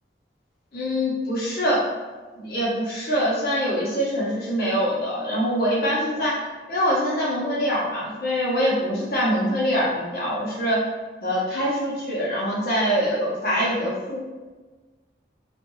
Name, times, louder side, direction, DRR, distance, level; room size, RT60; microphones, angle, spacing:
voice 1, 0.7-1.9 2.4-6.4 6.7-10.9 11.2-14.2, equal, 55° left, -6 dB, 0.9 m, -24 dB
2.8 x 2.5 x 2.7 m, 1.3 s
head